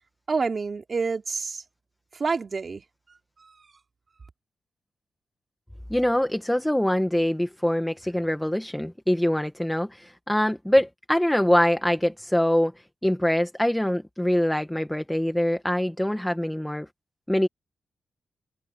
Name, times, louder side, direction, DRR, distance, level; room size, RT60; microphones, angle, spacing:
voice 1, 0.3-1.6 2.1-2.8 3.4-3.7, right 4 dB, 45° right, 2.9 m, -28 dB
voice 2, 5.9-16.9 17.3-17.5, left 1 dB, 5° left, 1.3 m, -24 dB
cardioid pair, 90°, 0 cm